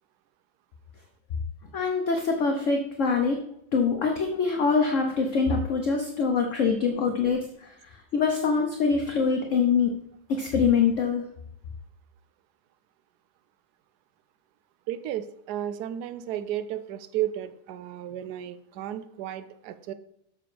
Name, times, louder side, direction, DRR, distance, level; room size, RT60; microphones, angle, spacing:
voice 1, 1.7-3.4 3.7-9.9 10.3-11.2, left 5 dB, 55° left, 3 dB, 0.9 m, -24 dB
voice 2, 14.9-19.9, right 11 dB, 90° right, 11 dB, 0.8 m, -33 dB
6.8 x 6.7 x 5.0 m, 0.75 s
omnidirectional pair, 2.3 m